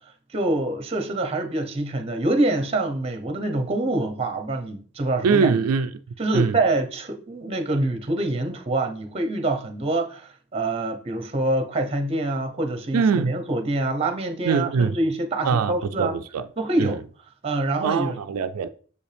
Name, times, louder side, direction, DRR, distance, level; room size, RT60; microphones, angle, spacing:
voice 1, 0.3-5.6 6.2-16.1 16.6-17.0 17.4-18.2, right 2 dB, 25° right, 0.8 m, -25 dB
voice 2, 5.2-5.9 6.3-6.6 12.9-13.3 14.4-15.0 15.4-16.4 16.8-17.0 17.8-18.7, right 5 dB, 80° right, 0.4 m, -22 dB
6.7 x 5.2 x 3.4 m
head